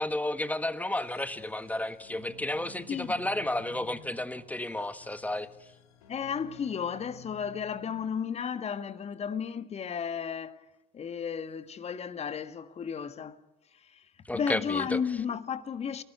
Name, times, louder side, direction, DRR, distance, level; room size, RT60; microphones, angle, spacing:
voice 1, 0.0-5.5 14.3-15.0, left 1 dB, 5° left, 1.5 m, -32 dB
sound 1, 1.0-8.7, left 3 dB, 65° left, 2.6 m, -53 dB
voice 2, 6.1-10.6 10.9-13.4 13.7-16.0, left 7 dB, 30° left, 1.9 m, -34 dB
29.0 x 19.0 x 9.4 m
figure-of-eight pair, 65°, 20 cm